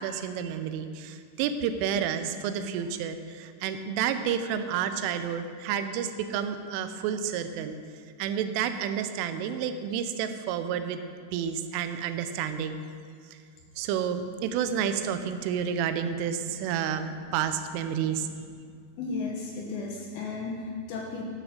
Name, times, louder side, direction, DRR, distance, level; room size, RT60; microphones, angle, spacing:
voice 1, 0.0-7.8 8.2-11.0 11.3-12.8 13.8-18.3, right 8 dB, 80° right, 9 dB, 3.1 m, -30 dB
voice 2, 19.0-21.2, left 4 dB, 75° left, -1 dB, 2.9 m, -34 dB
12.5 x 7.6 x 6.5 m, 2.1 s
omnidirectional pair, 5.9 m